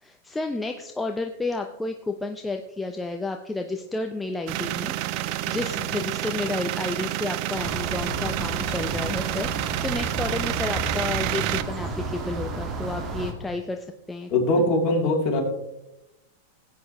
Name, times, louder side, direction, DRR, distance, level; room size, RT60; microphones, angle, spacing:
voice 1, 0.0-14.3 14.6-14.7, left 2 dB, 10° left, 4 dB, 0.6 m, -31 dB
sound 1, 4.5-11.6, right 14 dB, 50° right, 0.5 m, -29 dB
sound 2, 7.6-13.3, right 2 dB, 35° right, 1.8 m, -32 dB
voice 2, 14.3-15.4, left 2 dB, 40° left, -1 dB, 3.2 m, -22 dB
16.5 x 8.7 x 3.1 m, 0.91 s
hypercardioid pair, 125°, 0 cm